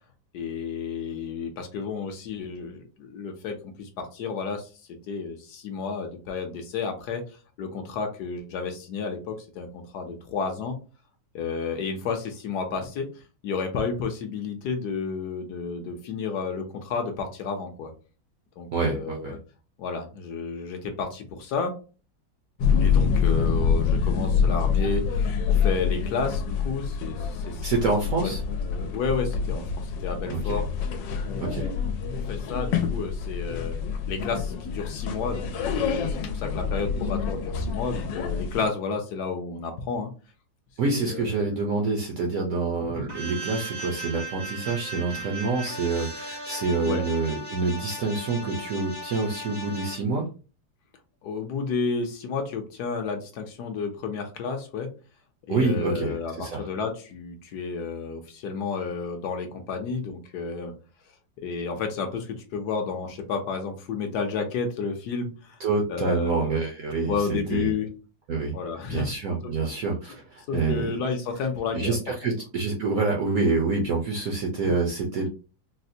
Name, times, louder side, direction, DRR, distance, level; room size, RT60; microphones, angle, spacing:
voice 1, 0.3-7.2 7.6-10.8 11.3-17.9 18.6-19.4 19.8-21.7 22.8-27.7 28.2-30.7 31.2-31.8 32.1-33.8 34.1-40.1 40.9-41.5 42.9-43.0 46.8-47.1 51.2-54.9 55.5-60.7 61.4-65.6 65.9-66.5 67.0-67.9 68.5-69.1 69.4-69.5 70.5-72.0 72.2-72.3, left 5 dB, 70° left, 5 dB, 1.1 m, -31 dB
voice 2, 18.7-19.3 27.6-28.4 30.3-30.4 31.4-31.7 40.8-50.3 55.5-56.7 65.6-67.7 68.3-68.5 68.9-70.9 71.7-75.3, right 3 dB, 65° right, 0 dB, 0.8 m, -27 dB
sound 1, 22.6-38.7, left 6 dB, 85° left, 1.3 m, -26 dB
sound 2, 43.1-50.0, right 1 dB, 35° right, 0.3 m, -37 dB
4.0 x 2.1 x 2.6 m, 0.35 s
omnidirectional pair, 2.0 m